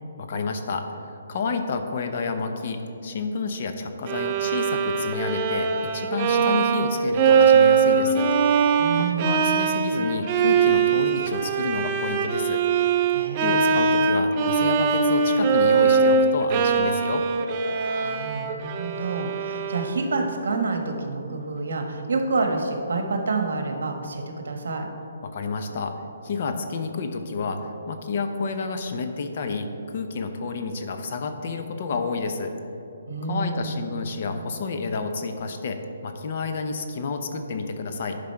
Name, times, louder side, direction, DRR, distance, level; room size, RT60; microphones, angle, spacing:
voice 1, 0.2-8.3 9.0-12.6 13.4-17.3 25.2-25.9 26.2-32.5 33.3-38.2, left 4 dB, 40° left, 6 dB, 0.7 m, -30 dB
Bowed string instrument, 4.1-20.1, right 5 dB, 25° right, 0.4 m, -22 dB
voice 2, 8.8-9.5 13.1-13.9 17.8-24.9 33.1-33.9, right 3 dB, 70° right, 4 dB, 1.2 m, -28 dB
10.5 x 5.0 x 4.5 m, 2.8 s
hypercardioid pair, 170°, 0 cm